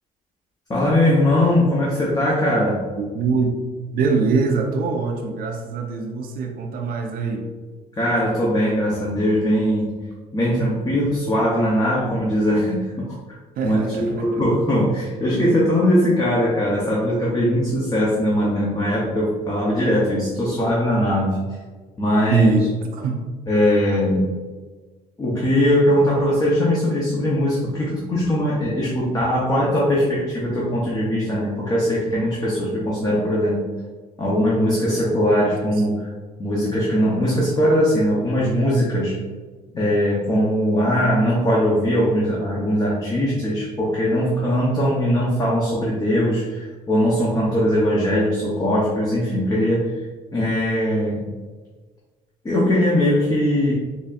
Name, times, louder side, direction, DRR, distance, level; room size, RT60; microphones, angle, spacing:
voice 1, 0.7-2.9 8.0-10.0 10.3-13.2 13.6-21.4 22.0-22.6 23.5-24.3 25.2-33.7 34.2-36.1 36.4-39.2 39.7-49.9 50.3-51.2 52.4-53.7, equal, 20° left, -5 dB, 0.8 m, -20 dB
voice 2, 3.0-3.5 3.9-7.4 10.5-10.7 13.6-14.4 22.3-23.2, right 4 dB, 60° right, 3 dB, 0.5 m, -23 dB
4.0 x 3.2 x 2.4 m, 1.4 s
cardioid pair, 110°, 17 cm